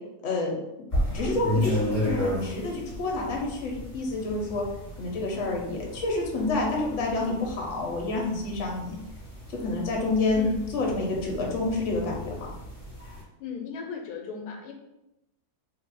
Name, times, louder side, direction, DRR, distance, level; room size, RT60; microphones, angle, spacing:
voice 1, 0.2-0.6 1.1-4.6 5.0-9.0 9.5-10.5 10.7-12.5, left 2 dB, 55° left, -1 dB, 1.1 m, -28 dB
sound 1, 0.9-13.2, left 1 dB, 25° left, 1.6 m, -34 dB
voice 2, 10.3-10.7 13.4-14.7, left 6 dB, 90° left, 2 dB, 1.1 m, -36 dB
3.1 x 2.5 x 4.0 m, 0.93 s
omnidirectional pair, 1.6 m